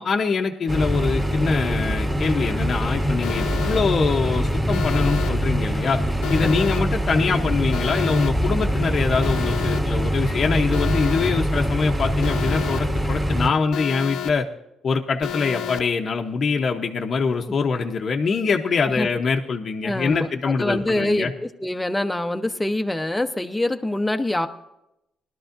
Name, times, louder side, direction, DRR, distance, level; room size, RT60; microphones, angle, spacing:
voice 1, 0.0-6.0 6.3-14.5 14.8-21.3, left 5 dB, 50° left, 1 dB, 0.8 m, -24 dB
sound 1, 0.7-13.5, equal, 25° right, 2.4 m, -23 dB
Alarm, 3.2-3.8 4.7-5.3 6.2-6.8 7.7-8.3 9.2-9.8 10.7-11.3 12.2-12.8 13.7-14.3 15.2-15.8, left 10 dB, 80° left, 0.7 m, -30 dB
voice 2, 19.8-24.5, left 1 dB, 10° left, 7 dB, 0.8 m, -25 dB
20.0 x 12.0 x 2.6 m, 0.85 s
cardioid pair, 90°, 0 cm